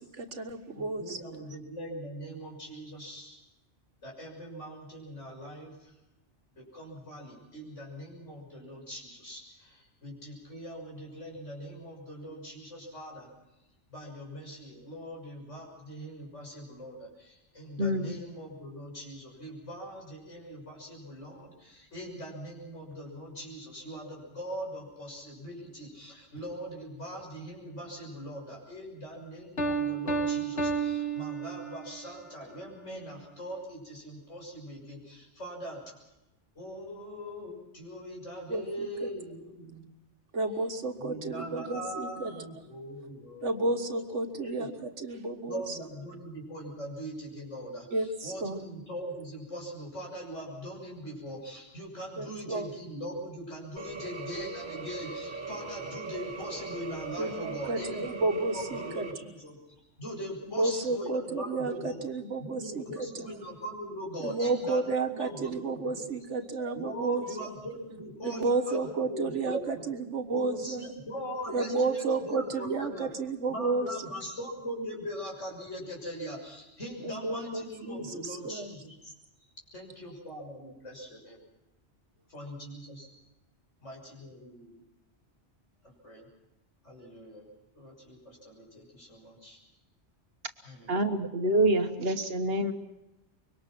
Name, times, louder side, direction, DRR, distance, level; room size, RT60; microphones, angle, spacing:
voice 1, 0.0-1.2 38.5-39.1 40.3-42.3 43.4-45.6 47.9-48.6 52.2-52.7 57.2-59.3 60.6-63.2 64.2-67.5 68.2-70.9 71.5-73.9 77.0-78.7, right 3 dB, 75° right, 6 dB, 1.9 m, -32 dB
voice 2, 0.7-3.4 4.0-5.9 6.5-13.3 13.9-35.8 36.5-39.9 40.9-43.8 44.4-44.7 45.4-59.6 60.0-66.0 66.7-69.9 70.3-73.1 73.5-79.1 79.4-81.4 82.3-83.1 83.8-84.7 85.8-86.2 86.8-87.4 87.7-89.6 90.6-91.2, equal, 85° left, -1 dB, 6.9 m, -41 dB
voice 3, 17.8-18.1 90.9-92.7, right 1 dB, 55° right, 7 dB, 1.5 m, -26 dB
Piano, 29.6-32.0, right 5 dB, 60° left, 1.7 m, -31 dB
sound 1, 53.8-59.1, right 3 dB, 40° right, 1.8 m, -40 dB
25.0 x 23.5 x 6.0 m, 0.95 s
omnidirectional pair, 1.2 m